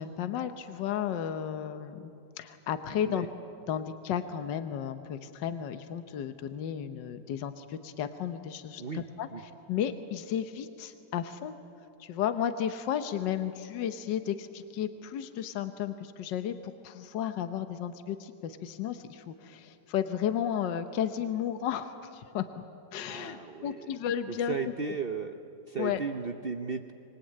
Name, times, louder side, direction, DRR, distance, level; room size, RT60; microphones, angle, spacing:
voice 1, 0.0-2.1 2.4-3.3 3.7-9.3 9.7-11.5 12.0-22.6 22.9-24.5 25.8-26.0, left 9 dB, 75° left, 9 dB, 1.6 m, -33 dB
voice 2, 23.1-23.9 24.5-25.3 25.7-26.9, right 5 dB, 50° right, 7 dB, 0.7 m, -35 dB
25.5 x 23.0 x 8.8 m, 2.6 s
omnidirectional pair, 2.0 m